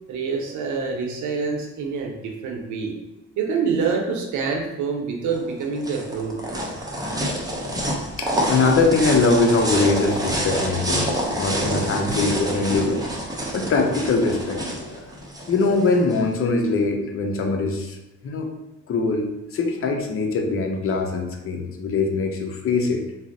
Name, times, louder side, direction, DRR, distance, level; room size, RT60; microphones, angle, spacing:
voice 1, 0.1-3.0 3.4-6.4, right 5 dB, 75° right, 1 dB, 0.7 m, -26 dB
sound 1, 5.3-16.2, right 1 dB, 15° right, 0.6 m, -27 dB
voice 2, 8.2-11.1 11.4-13.1 13.5-15.1 15.5-18.0 18.2-18.5 18.9-23.0, left 3 dB, 45° left, 2 dB, 0.6 m, -22 dB
2.5 x 2.0 x 3.8 m, 0.99 s
cardioid pair, 90°, 30 cm